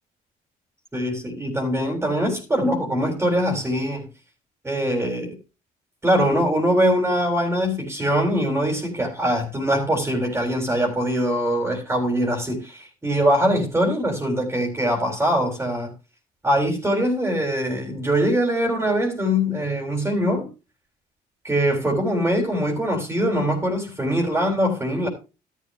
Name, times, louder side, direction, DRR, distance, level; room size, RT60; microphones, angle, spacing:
voice 1, 0.9-4.0 4.6-5.4 6.0-15.9 16.4-20.5 21.4-25.1, equal, 15° right, 4.1 m, -22 dB
13.0 x 12.0 x 2.7 m
cardioid pair, 110°, 17 cm